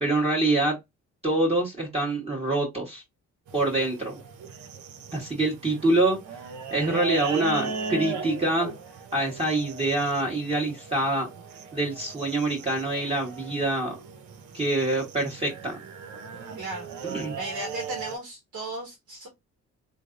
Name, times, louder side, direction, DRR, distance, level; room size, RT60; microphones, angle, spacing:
voice 1, 0.0-0.8 1.2-3.0 3.5-4.2 5.1-6.2 6.7-8.7 9.1-11.3 11.7-13.9 14.5-15.8 17.0-17.3, right 2 dB, 20° right, 1.2 m, -25 dB
sound 1, 3.5-18.2, right 4 dB, 70° right, 0.7 m, -38 dB
voice 2, 16.6-19.3, right 2 dB, 85° right, 1.4 m, -36 dB
3.2 x 2.6 x 2.5 m
cardioid pair, 90°, 30 cm